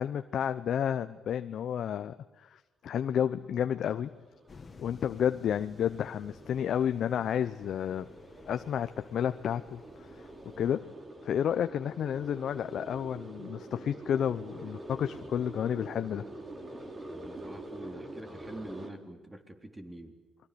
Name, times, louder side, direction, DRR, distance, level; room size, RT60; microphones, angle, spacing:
voice 1, 0.0-4.1 4.8-8.1 8.5-9.8 10.2-10.3 10.6-10.9 11.2-16.3, left 9 dB, 65° left, 9 dB, 0.8 m, -31 dB
sound 1, 3.4-18.9, right 1 dB, 30° right, 3.8 m, -46 dB
sound 2, 4.5-10.7, left 4 dB, 35° left, 2.1 m, -54 dB
voice 2, 17.1-20.2, right 1 dB, 15° right, 5 dB, 3.7 m, -45 dB
28.0 x 22.5 x 6.9 m, 1.2 s
cardioid pair, 90°, 0 cm